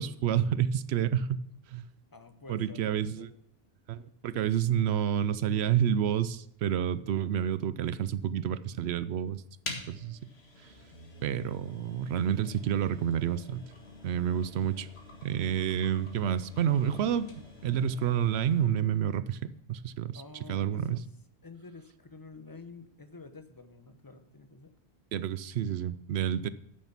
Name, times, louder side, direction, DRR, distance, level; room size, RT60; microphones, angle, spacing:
voice 1, 0.0-1.4 1.7-1.8 2.5-3.3 3.9-9.4 9.9-10.2 11.2-13.6 14.0-14.9 15.2-17.3 17.6-19.4 19.7-20.2 20.5-21.0 25.1-26.5, right 9 dB, 90° right, 16 dB, 0.8 m, -29 dB
voice 2, 2.1-3.3 20.1-21.0 21.4-24.7, left 3 dB, 20° left, 9 dB, 0.8 m, -49 dB
sound 1, 9.6-18.8, left 3 dB, 80° left, 2.0 m, -47 dB
9.0 x 6.6 x 5.8 m, 0.81 s
omnidirectional pair, 1.1 m